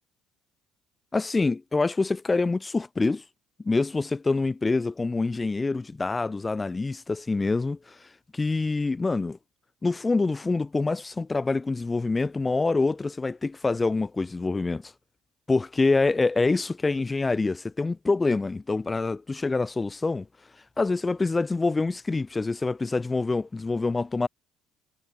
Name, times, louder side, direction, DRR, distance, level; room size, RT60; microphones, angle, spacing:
voice 1, 1.1-3.2 3.6-8.0 8.3-9.4 9.8-14.9 15.5-20.3 20.8-24.3, left 3 dB, 20° left, 0.4 m, -26 dB
figure-of-eight pair, 55°, 0 cm